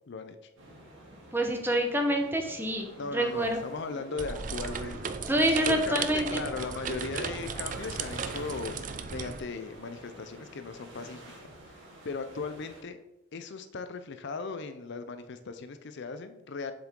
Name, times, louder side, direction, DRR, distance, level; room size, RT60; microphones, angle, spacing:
voice 1, 0.1-0.4 3.0-5.1 5.7-11.2 12.0-13.0 13.3-16.7, left 4 dB, 50° left, 10 dB, 0.5 m, -37 dB
sound 1, 0.6-12.8, right 1 dB, 55° right, 2.6 m, -50 dB
voice 2, 1.3-3.6 5.3-6.4, right 1 dB, 10° right, 3 dB, 0.9 m, -27 dB
sound 2, 3.9-8.3, equal, 5° left, 1.9 m, -48 dB
sound 3, 4.2-9.4, right 6 dB, 35° right, 0.4 m, -36 dB
7.5 x 7.1 x 3.7 m, 0.96 s
head